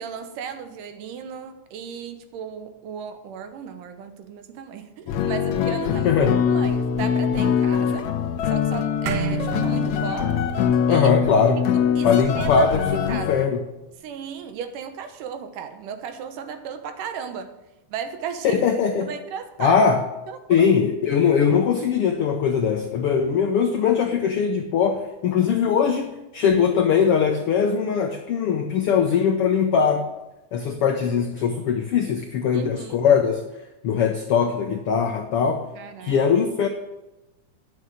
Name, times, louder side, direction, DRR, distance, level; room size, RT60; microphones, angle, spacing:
voice 1, 0.0-6.1 6.5-8.1 8.5-10.4 10.9-11.1 11.7-12.1 12.4-12.7 13.1-13.3 14.0-17.6 17.9-18.7 19.0-19.9 20.3-20.6 32.5-33.0 35.7-36.2, right 7 dB, 85° right, 8 dB, 2.6 m, -35 dB
sound 1, 5.1-13.5, left 7 dB, 70° left, 1.9 m, -23 dB
voice 2, 5.9-6.4 10.9-11.6 12.0-13.6 18.4-19.1 19.6-20.0 20.5-30.1 30.5-33.4 33.8-35.6 36.0-36.7, left 6 dB, 85° left, 5 dB, 1.2 m, -21 dB
sound 2, 9.1-13.7, right 8 dB, 65° right, 1.8 m, -34 dB
11.0 x 7.2 x 6.4 m, 1.0 s
omnidirectional pair, 3.7 m